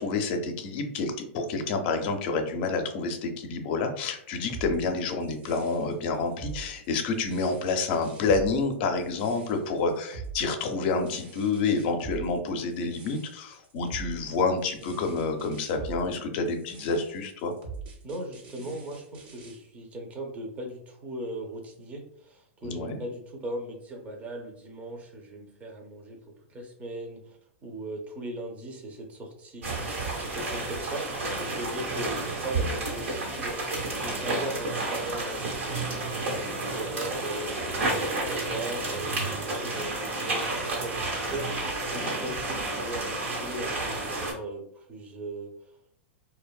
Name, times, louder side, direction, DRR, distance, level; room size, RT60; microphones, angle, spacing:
voice 1, 0.0-17.5 22.6-23.0 41.9-42.2, left 4 dB, 55° left, 5 dB, 0.5 m, -28 dB
sound 1, 4.5-19.6, right 5 dB, 55° right, 0.7 m, -43 dB
voice 2, 18.0-26.2 26.5-37.6 37.9-45.8, right 1 dB, 20° right, 1 dB, 0.5 m, -39 dB
sound 2, 29.6-44.3, right 2 dB, 80° right, 1.0 m, -31 dB
2.5 x 2.2 x 2.2 m, 0.69 s
hypercardioid pair, 120°, 7 cm